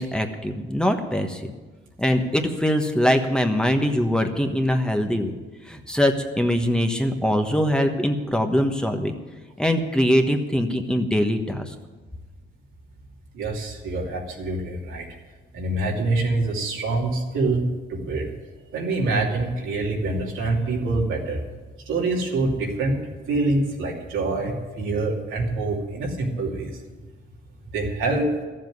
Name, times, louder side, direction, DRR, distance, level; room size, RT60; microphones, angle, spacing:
voice 1, 0.0-1.5 2.0-5.3 5.7-9.1 9.6-11.7, equal, 5° left, 4 dB, 1.2 m, -22 dB
voice 2, 13.3-15.1 15.5-18.3 18.7-21.4 21.8-23.0 23.3-26.8 27.7-28.3, right 2 dB, 85° right, -1 dB, 2.8 m, -25 dB
13.0 x 7.5 x 9.4 m, 1.3 s
cardioid pair, 90°, 20 cm